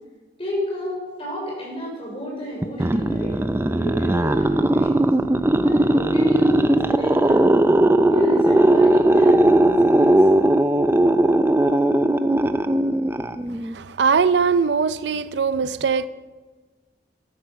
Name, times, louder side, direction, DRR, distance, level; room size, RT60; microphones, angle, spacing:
voice 1, 0.4-5.1 5.6-7.6 8.1-10.3, left 1 dB, 30° left, -3 dB, 5.4 m, -31 dB
sound 1, 2.6-13.7, right 1 dB, 15° right, 0.4 m, -18 dB
voice 2, 13.7-16.1, right 5 dB, 85° right, 15 dB, 0.5 m, -21 dB
13.0 x 11.5 x 5.8 m, 1.3 s
head